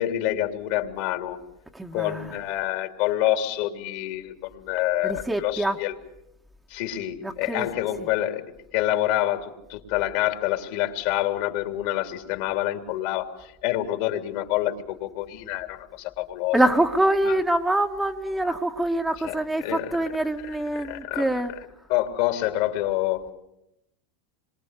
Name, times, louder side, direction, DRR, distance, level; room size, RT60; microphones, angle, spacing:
voice 1, 0.0-1.4 1.9-5.9 6.7-16.6 19.2-20.0 20.8-21.3 21.9-23.3, left 14 dB, 65° left, 3.4 m, -27 dB
voice 2, 1.7-2.3 5.0-5.8 7.2-7.7 16.5-21.5, right 1 dB, 5° right, 1.6 m, -25 dB
27.0 x 23.5 x 8.4 m
hypercardioid pair, 115°, 0 cm